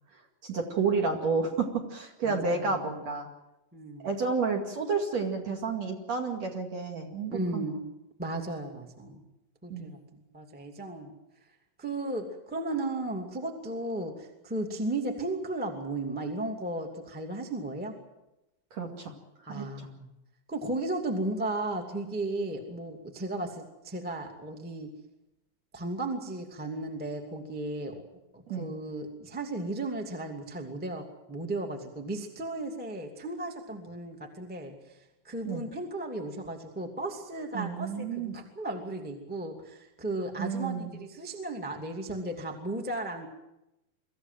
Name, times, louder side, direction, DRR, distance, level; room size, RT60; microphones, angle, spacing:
voice 1, 0.4-3.3 4.0-7.7 9.7-9.9 18.7-19.1 19.4-19.9 28.5-28.7 35.4-35.6 37.5-38.3 40.4-41.0, right 4 dB, 45° right, 2 dB, 2.9 m, -30 dB
voice 2, 2.2-2.9 3.7-4.1 7.3-7.9 8.2-9.2 9.6-11.1 11.8-17.9 19.5-20.1 20.5-24.9 25.7-28.0 28.3-35.0 35.2-43.3, right 2 dB, 5° right, 2 dB, 1.2 m, -35 dB
23.5 x 15.0 x 9.2 m, 0.94 s
omnidirectional pair, 5.1 m